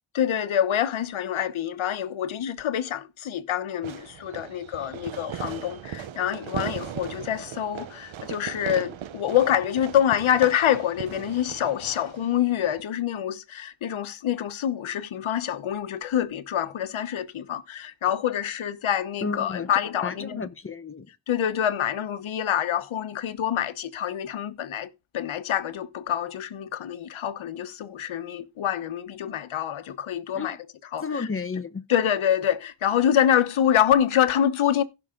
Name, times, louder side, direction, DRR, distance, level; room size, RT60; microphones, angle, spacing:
voice 1, 0.1-20.5 21.3-30.6 30.9-31.3 31.9-34.8, left 10 dB, 85° left, 1.1 m, -26 dB
Fireworks, 3.8-12.8, right 10 dB, 80° right, 0.9 m, -38 dB
voice 2, 19.2-19.7 20.0-21.1 30.3-30.6 31.0-31.8, left 4 dB, 25° left, 1.1 m, -32 dB
16.0 x 6.2 x 3.8 m
cardioid pair, 90°, 47 cm